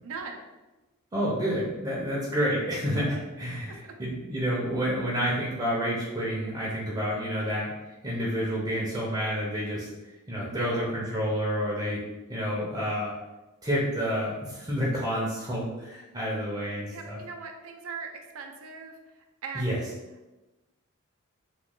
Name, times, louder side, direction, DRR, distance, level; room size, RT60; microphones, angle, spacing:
voice 1, 0.0-0.4 3.8-3.9 10.5-10.9 16.1-16.2 16.9-18.1 18.3-18.9 19.4-19.8, right 5 dB, 65° right, 3 dB, 0.5 m, -39 dB
voice 2, 1.1-7.7 8.0-9.9 10.3-12.0 12.3-13.1 13.6-17.2 19.5-19.8, equal, 20° right, -5 dB, 0.6 m, -29 dB
3.0 x 2.3 x 3.6 m, 1.1 s
head